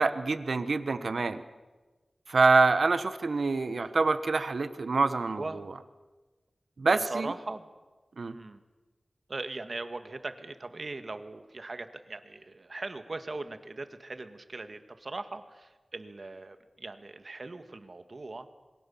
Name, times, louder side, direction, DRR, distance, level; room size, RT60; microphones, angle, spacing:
voice 1, 0.0-1.4 2.3-5.7 6.8-7.3 8.2-8.3, right 3 dB, 70° right, 11 dB, 1.4 m, -26 dB
voice 2, 6.9-7.7 8.3-8.6 9.3-18.5, right 3 dB, 50° right, 9 dB, 1.9 m, -40 dB
27.0 x 23.0 x 7.3 m, 1.2 s
wide cardioid pair, 80°, 0 cm